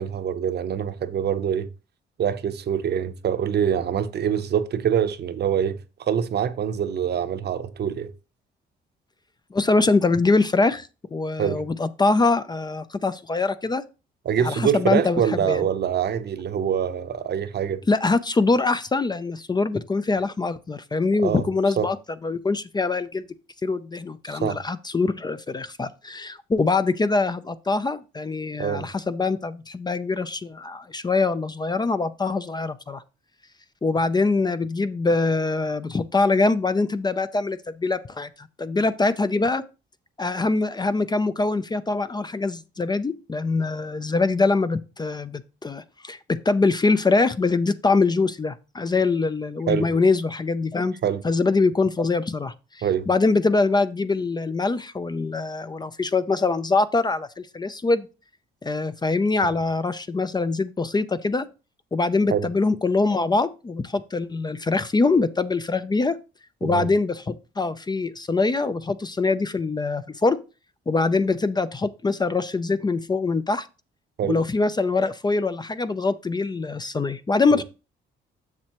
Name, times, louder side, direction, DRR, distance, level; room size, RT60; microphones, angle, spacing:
voice 1, 0.0-1.7 2.2-8.1 11.4-11.6 14.2-17.8 21.2-21.5 21.8-21.9 24.3-24.6 28.6-28.9 49.7-49.9 51.0-51.2 52.8-53.1 62.3-62.5 66.6-66.9 74.2-74.4 77.5-77.6, right 8 dB, 55° right, 0.8 m, -25 dB
voice 2, 9.5-13.8 14.4-15.2 15.5-15.6 17.9-22.0 22.2-23.3 23.6-33.0 33.8-39.6 40.2-51.0 51.2-58.1 58.6-61.5 61.9-66.2 66.6-70.4 70.9-73.7 74.3-77.6, left 3 dB, 20° left, 0.4 m, -23 dB
7.3 x 6.5 x 3.0 m
cardioid pair, 90°, 20 cm